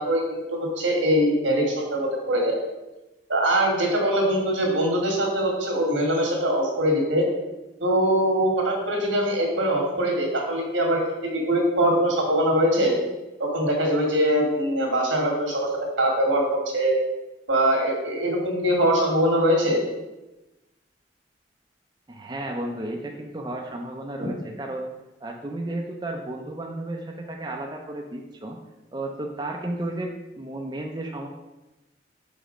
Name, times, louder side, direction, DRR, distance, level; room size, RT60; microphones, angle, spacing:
voice 1, 0.0-2.6 3.3-7.2 7.8-12.9 13.4-15.7 16.0-16.4 16.7-17.0 17.5-19.8, right 1 dB, 90° right, 0 dB, 1.8 m, -22 dB
voice 2, 22.1-24.9 25.2-28.6 28.9-31.3, right 1 dB, 20° right, 1 dB, 0.5 m, -33 dB
5.1 x 4.6 x 5.0 m, 1.0 s
head